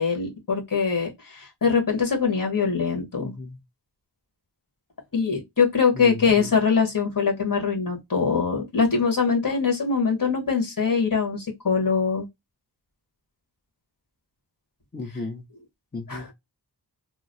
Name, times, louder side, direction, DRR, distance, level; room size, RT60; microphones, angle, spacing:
voice 1, 0.0-3.3 5.1-12.3 16.1-16.3, left 5 dB, 50° left, 1.4 m, -23 dB
voice 2, 3.1-3.6 6.0-6.5 14.9-15.4 15.9-16.3, left 3 dB, 20° left, 0.8 m, -34 dB
3.0 x 2.0 x 3.9 m
wide cardioid pair, 55°, 41 cm